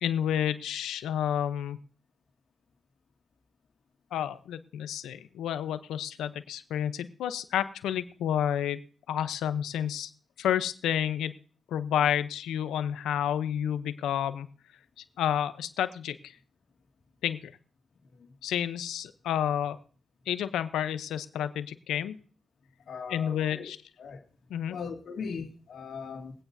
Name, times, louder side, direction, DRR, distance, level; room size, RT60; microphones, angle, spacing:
voice 1, 0.0-1.8 4.1-8.8 9.1-10.1 10.4-11.4 11.7-14.5 15.0-16.3 17.2-17.5 18.4-19.8 20.3-22.2 23.1-23.8 24.5-24.8, left 10 dB, 85° left, 0.7 m, -30 dB
voice 2, 22.9-23.7 24.0-24.2 24.7-26.3, left 5 dB, 70° left, 2.2 m, -39 dB
22.0 x 8.9 x 2.7 m
supercardioid pair, 55°, 0 cm